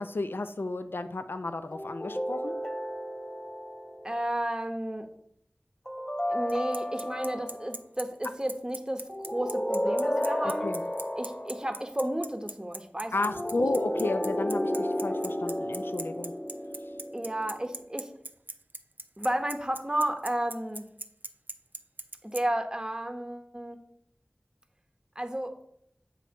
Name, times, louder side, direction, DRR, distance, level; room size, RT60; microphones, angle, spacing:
voice 1, 0.0-2.6 10.4-10.8 13.1-16.3, left 2 dB, 75° left, 9 dB, 0.4 m, -33 dB
sound 1, 1.7-4.2 5.9-7.7 9.1-11.8 13.1-17.7, equal, 20° left, 0.7 m, -32 dB
voice 2, 4.0-5.1 6.3-10.7 11.2-13.1 17.1-18.1 19.2-20.9 22.2-23.8 25.2-25.6, right 1 dB, 20° right, 6 dB, 0.8 m, -32 dB
Bicycle, 6.5-22.4, right 2 dB, 55° right, 0.5 m, -39 dB
7.6 x 3.2 x 5.2 m, 0.71 s
wide cardioid pair, 50°, 4 cm